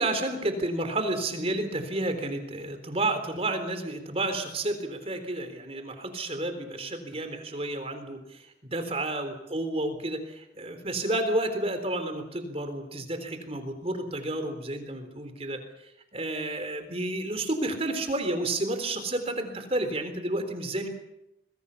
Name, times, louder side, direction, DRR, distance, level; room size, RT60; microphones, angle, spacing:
voice 1, 0.0-15.6 16.1-20.9, right 2 dB, 35° right, 7 dB, 3.9 m, -31 dB
27.5 x 21.0 x 7.1 m, 0.85 s
head